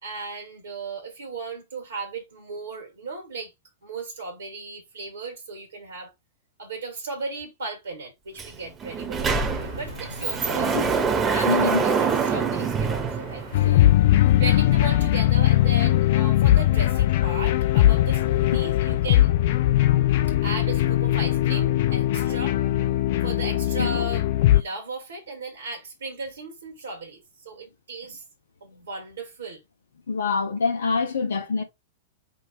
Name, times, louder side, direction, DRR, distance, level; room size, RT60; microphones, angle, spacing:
voice 1, 0.0-3.5 3.8-6.1 6.6-10.8 11.3-13.9 14.3-19.7 20.4-22.6 23.2-28.2 28.6-29.6, right 3 dB, 70° right, 1.3 m, -36 dB
Sliding door, 8.4-8.5 8.8-13.8, right 5 dB, 20° right, 0.9 m, -25 dB
sound 1, 9.5-14.9, left 1 dB, 85° left, 2.3 m, -43 dB
voice 2, 11.5-11.8 23.8-24.1 30.1-31.6, left 4 dB, 70° left, 1.1 m, -25 dB
sound 2, 13.5-24.6, left 13 dB, 55° left, 0.4 m, -20 dB
5.2 x 2.3 x 4.2 m
figure-of-eight pair, 95°, 0 cm